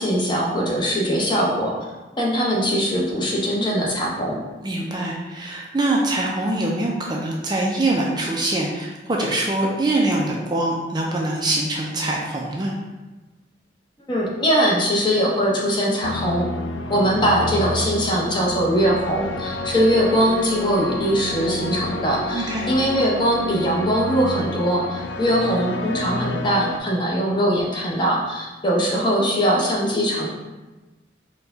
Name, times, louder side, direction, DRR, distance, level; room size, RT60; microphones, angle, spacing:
voice 1, 0.0-1.7 2.2-4.4 14.1-16.5 16.9-30.3, equal, 25° left, -4 dB, 0.8 m, -21 dB
voice 2, 4.6-12.7 22.3-22.7, right 2 dB, 25° right, -2 dB, 0.4 m, -23 dB
sound 1, 16.0-26.8, left 1 dB, 85° left, 0.3 m, -30 dB
4.6 x 2.2 x 3.8 m, 1.1 s
head